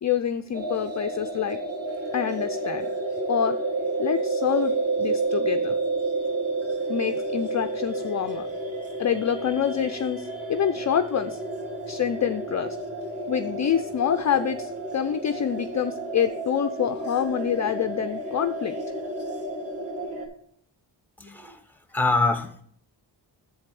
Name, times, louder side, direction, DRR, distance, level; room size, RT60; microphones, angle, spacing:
voice 1, 0.0-1.6 2.1-2.9 3.3-3.6 4.0-4.7 5.0-5.8 6.9-8.5 9.0-11.4 11.9-12.8 13.3-18.7, left 8 dB, 40° left, 10 dB, 0.5 m, -26 dB
sound 1, 0.5-20.3, right 2 dB, 30° right, 1.9 m, -30 dB
voice 2, 21.2-21.6 21.9-22.6, left 3 dB, 5° left, 9 dB, 1.1 m, -25 dB
7.1 x 4.5 x 5.9 m, 0.63 s
cardioid pair, 55°, 46 cm